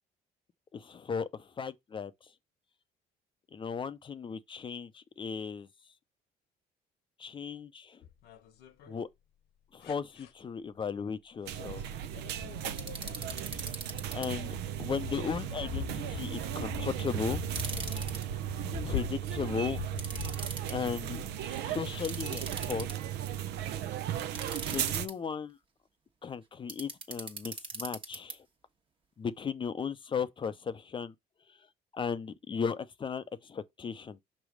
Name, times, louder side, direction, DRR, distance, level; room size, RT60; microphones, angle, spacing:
voice 1, 0.7-2.3 3.5-5.7 7.2-8.0 8.9-9.1 9.7-11.8 13.5-13.8 14.1-17.4 18.9-19.8 20.7-22.9 24.7-25.6 26.2-28.5 29.2-31.1 31.5-31.7 31.9-34.2, left 6 dB, 30° left, 0.5 m, -36 dB
sound 1, 8.0-8.9 9.8-10.3 11.6-11.8 12.1-21.0 21.9-22.1, left 8 dB, 75° left, 1.0 m, -42 dB
sound 2, 11.5-25.1, right 11 dB, 80° right, 0.6 m, -36 dB
sound 3, 12.8-14.3 17.4-18.2 20.0-20.7 22.0-23.1 24.3-25.1 26.7-28.3, right 3 dB, 30° right, 1.2 m, -40 dB
6.0 x 3.1 x 4.9 m
cardioid pair, 110°, 17 cm